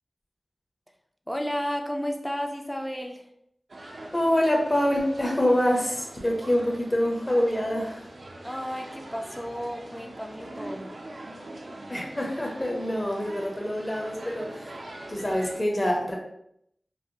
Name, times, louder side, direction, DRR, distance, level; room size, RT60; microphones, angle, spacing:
voice 1, 1.3-3.3 8.4-10.9, equal, 10° left, 3 dB, 0.5 m, -32 dB
sound 1, 3.7-15.6, right 1 dB, 75° right, 0.5 m, -43 dB
voice 2, 4.1-8.1 11.9-16.2, left 1 dB, 30° left, 0 dB, 0.8 m, -26 dB
3.2 x 2.1 x 2.7 m, 0.73 s
cardioid pair, 40°, 0 cm